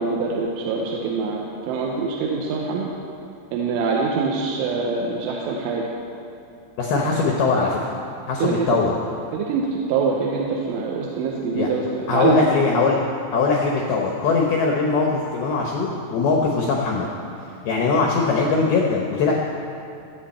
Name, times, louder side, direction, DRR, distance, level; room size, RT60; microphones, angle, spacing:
voice 1, 0.0-2.9 3.5-5.9 7.0-7.3 8.4-8.8 9.3-12.5, right 4 dB, 75° right, -2 dB, 3.3 m, -24 dB
voice 2, 6.8-7.9 8.3-9.0 11.5-11.7 12.1-13.0 13.3-17.1 17.6-19.3, left 4 dB, 85° left, -1 dB, 2.2 m, -21 dB
23.5 x 8.3 x 4.3 m, 2.5 s
omnidirectional pair, 6.0 m